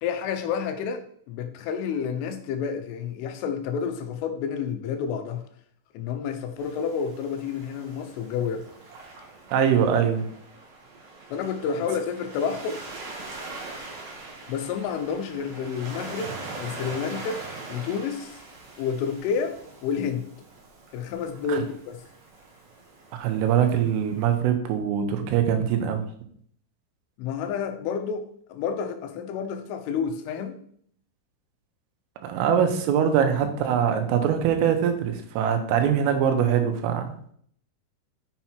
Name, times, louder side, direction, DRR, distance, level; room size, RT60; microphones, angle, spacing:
voice 1, 0.0-5.4 6.0-8.7 11.3-12.8 14.5-18.4 18.8-20.3 20.9-22.0 27.2-30.6, left 6 dB, 85° left, 3.4 m, -30 dB
Waves surf, 6.6-24.4, right 3 dB, 50° right, 2.2 m, -42 dB
voice 2, 9.5-10.3 21.5-21.6 23.2-26.1 32.2-37.1, right 8 dB, 90° right, 3.7 m, -23 dB
7.3 x 6.9 x 4.5 m
omnidirectional pair, 5.6 m